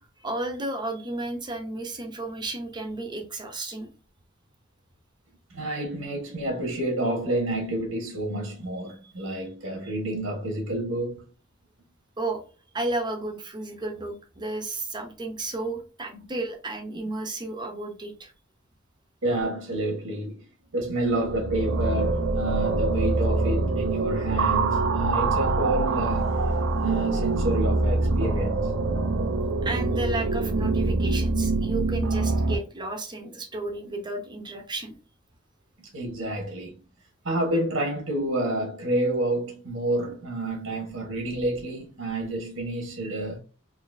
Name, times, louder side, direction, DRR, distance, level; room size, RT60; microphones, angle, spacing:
voice 1, 0.2-3.9 8.9-9.1 12.2-12.4 12.7-18.3 29.6-34.9, right 2 dB, 20° right, 0.8 m, -33 dB
voice 2, 5.5-11.2 19.2-20.4 20.7-26.4 26.8-28.7 35.8-36.8 37.2-43.4, right 1 dB, 85° right, 1.4 m, -29 dB
sound 1, 21.1-32.5, right 3 dB, 70° right, 0.5 m, -25 dB
4.0 x 2.8 x 2.6 m
head